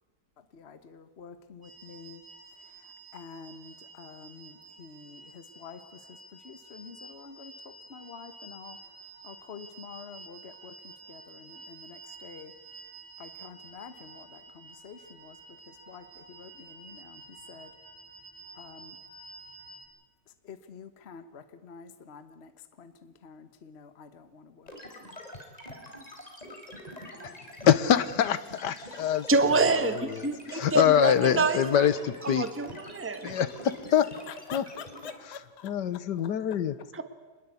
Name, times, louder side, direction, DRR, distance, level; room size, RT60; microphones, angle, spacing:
voice 1, 0.5-2.2 2.8-8.8 9.2-12.5 13.2-15.4 15.7-17.7 18.6-19.0 20.4-22.5 22.8-24.7 25.0-25.2 34.3-35.7, left 6 dB, 40° left, 10 dB, 1.4 m, -48 dB
sound 1, 1.6-19.8, right 3 dB, 80° right, 8.8 m, -50 dB
sound 2, 24.7-35.1, left 1 dB, 20° left, 3.8 m, -45 dB
voice 2, 27.6-32.5 33.2-34.1 34.5-34.6 35.6-36.7, left 9 dB, 80° left, 15 dB, 1.6 m, -25 dB
voice 3, 29.3-30.0 30.2-31.9 32.2-33.4 36.9-37.0, right 3 dB, 10° right, 8 dB, 1.4 m, -26 dB
26.5 x 21.0 x 8.4 m, 1.2 s
omnidirectional pair, 1.8 m